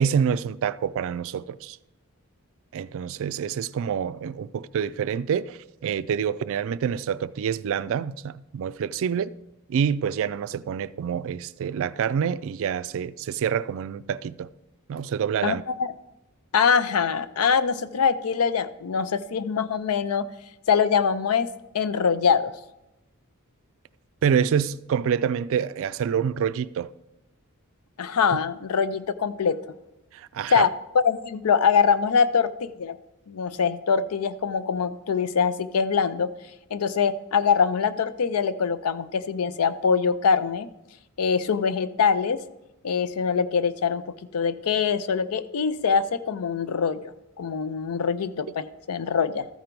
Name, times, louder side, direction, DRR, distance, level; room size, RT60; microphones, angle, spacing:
voice 1, 0.0-1.8 2.7-9.3 9.7-14.5 14.9-15.6 24.2-26.9 30.1-30.7, right 7 dB, 65° right, 0.3 m, -27 dB
voice 2, 16.5-20.3 20.7-22.5 28.0-29.6 30.5-30.7 30.9-33.0 33.3-36.3 36.7-40.7 41.2-42.4 42.8-44.0 44.3-47.0 47.4-49.5, left 6 dB, 90° left, 0.5 m, -23 dB
13.5 x 4.5 x 5.2 m
head